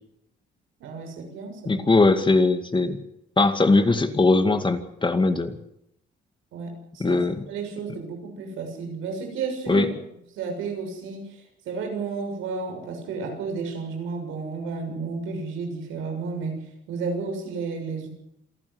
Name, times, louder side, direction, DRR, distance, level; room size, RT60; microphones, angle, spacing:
voice 1, 0.8-1.8 6.5-7.2 7.5-9.9 10.3-16.6 16.9-18.1, right 4 dB, 90° right, 4 dB, 6.7 m, -32 dB
voice 2, 1.7-3.0 3.4-5.6 7.0-7.4 9.7-9.9, left 3 dB, 25° left, 9 dB, 2.3 m, -20 dB
27.5 x 12.5 x 8.0 m, 0.80 s
cardioid pair, 90°, 20 cm